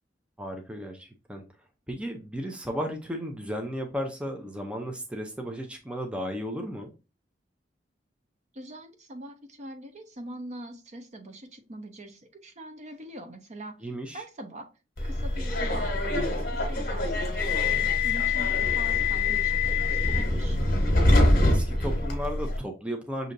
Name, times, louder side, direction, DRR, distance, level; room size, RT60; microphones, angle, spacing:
voice 1, 0.4-1.4 1.9-6.9 13.8-14.2 21.4-23.3, equal, 5° right, 3 dB, 0.6 m, -34 dB
voice 2, 8.5-13.8 14.1-14.7 15.0-20.6, right 1 dB, 40° right, 6 dB, 0.8 m, -43 dB
Subway metro underground, 15.0-22.6, left 2 dB, 55° left, 1.1 m, -24 dB
6.4 x 2.8 x 2.6 m, 0.31 s
head